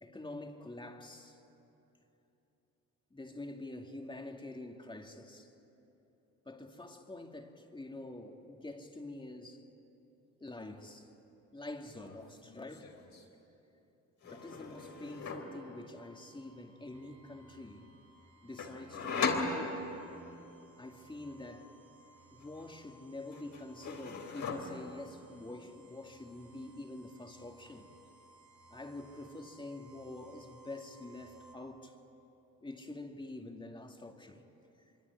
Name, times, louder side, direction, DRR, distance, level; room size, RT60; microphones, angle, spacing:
voice 1, 0.0-1.4 3.1-5.5 6.4-9.7 10.4-11.1 11.5-13.0 14.2-18.0 18.4-19.9 20.8-21.7 22.3-27.9 28.7-32.0 32.6-34.4 34.8-34.9, left 2 dB, 15° left, 2.4 m, -46 dB
sound 1, 11.9-12.2 12.4-13.2 14.2-15.6 18.6-20.2 22.4-23.0 23.3-25.0, left 4 dB, 65° left, 3.7 m, -38 dB
sound 2, 14.3-31.6, right 2 dB, 75° right, 4.3 m, -61 dB
25.0 x 24.5 x 9.7 m
cardioid pair, 90°, 30 cm